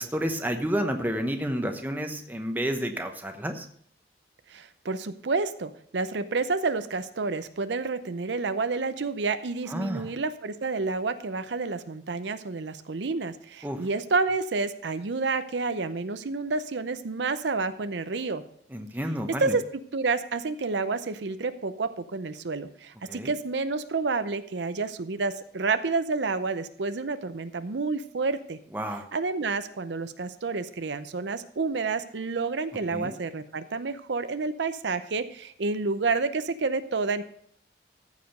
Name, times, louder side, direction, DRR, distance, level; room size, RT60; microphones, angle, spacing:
voice 1, 0.0-3.7 9.7-10.1 13.6-13.8 18.7-19.5 23.1-23.3 28.7-29.1 32.9-33.1, equal, 10° right, 5 dB, 0.9 m, -30 dB
voice 2, 4.5-18.4 19.4-19.6 19.9-28.6 29.1-37.2, right 4 dB, 75° right, 11 dB, 0.6 m, -29 dB
14.5 x 5.0 x 6.5 m, 0.66 s
head